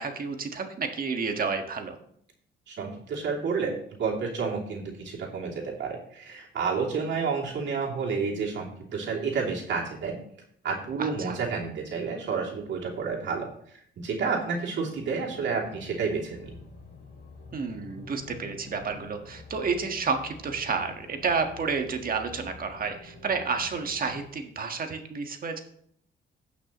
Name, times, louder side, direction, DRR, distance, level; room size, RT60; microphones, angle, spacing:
voice 1, 0.0-2.0 11.0-11.4 17.5-25.6, right 5 dB, 45° right, 5 dB, 1.6 m, -30 dB
voice 2, 2.7-3.7 4.0-10.1 10.6-13.5 14.0-16.5, right 5 dB, 65° right, -2 dB, 3.0 m, -30 dB
sound 1, 14.9-24.3, left 3 dB, 50° left, 4.5 m, -48 dB
17.0 x 6.0 x 3.1 m, 0.66 s
cardioid pair, 90°, 20 cm